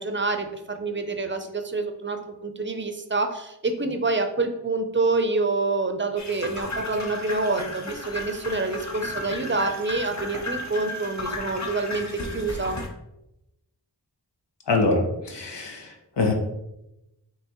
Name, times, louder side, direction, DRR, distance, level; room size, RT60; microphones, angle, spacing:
voice 1, 0.0-12.8, right 3 dB, 30° right, 6 dB, 0.5 m, -27 dB
sound 1, 6.2-12.9, left 2 dB, 45° left, 0.8 m, -34 dB
voice 2, 14.7-16.3, left 3 dB, 80° left, 2 dB, 0.8 m, -24 dB
5.5 x 3.0 x 3.0 m, 0.89 s
wide cardioid pair, 65°, 41 cm